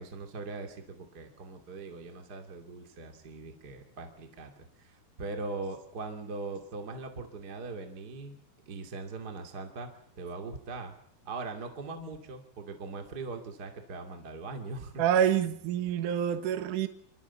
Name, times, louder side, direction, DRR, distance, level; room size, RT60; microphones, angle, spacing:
voice 1, 0.0-8.4 8.7-9.9 10.2-11.0 11.2-15.0, right 3 dB, 30° right, 4 dB, 2.3 m, -40 dB
voice 2, 15.0-16.9, right 9 dB, 65° right, 9 dB, 2.4 m, -27 dB
26.0 x 25.0 x 7.1 m, 0.66 s
omnidirectional pair, 4.7 m